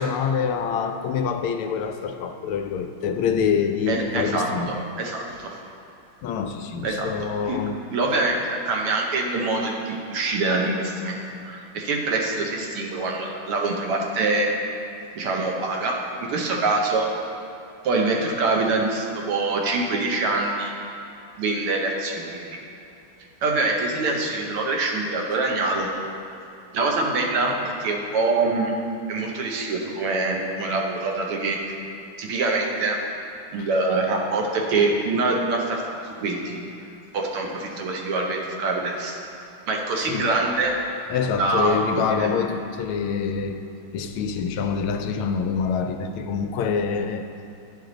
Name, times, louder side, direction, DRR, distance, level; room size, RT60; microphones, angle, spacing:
voice 1, 0.0-4.7 6.2-7.8 33.6-33.7 40.0-40.3 41.1-43.6 43.9-47.3, left 6 dB, 80° left, 7 dB, 1.4 m, -26 dB
voice 2, 3.9-4.5 5.0-5.5 6.8-7.1 7.5-7.6 7.9-11.2 11.5-14.5 15.2-17.1 17.8-20.7 21.4-22.5 23.4-25.9 26.7-28.7 29.1-31.6 32.2-33.0 33.5-36.6 37.1-39.2 39.7-40.8 41.4-41.8 42.1-42.3, right 3 dB, 85° right, 0 dB, 1.8 m, -24 dB
10.5 x 6.5 x 3.8 m, 2.6 s
omnidirectional pair, 2.4 m